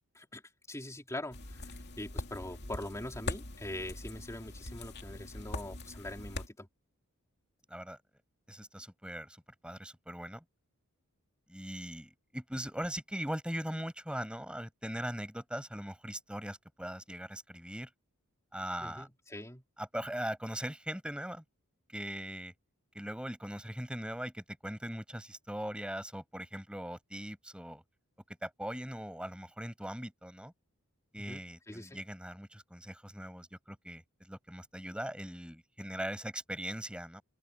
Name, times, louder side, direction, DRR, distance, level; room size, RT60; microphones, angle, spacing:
voice 1, 0.7-6.7 18.8-19.6 31.2-32.0, left 1 dB, 15° left, 4.1 m, -43 dB
sound 1, 1.3-6.5, left 2 dB, 50° left, 2.6 m, -42 dB
voice 2, 8.5-9.4 9.6-10.4 11.5-17.9 18.5-19.1 19.8-21.4 21.9-22.5 22.9-27.8 28.4-30.5 31.1-37.2, equal, 5° right, 6.1 m, -40 dB
open air
head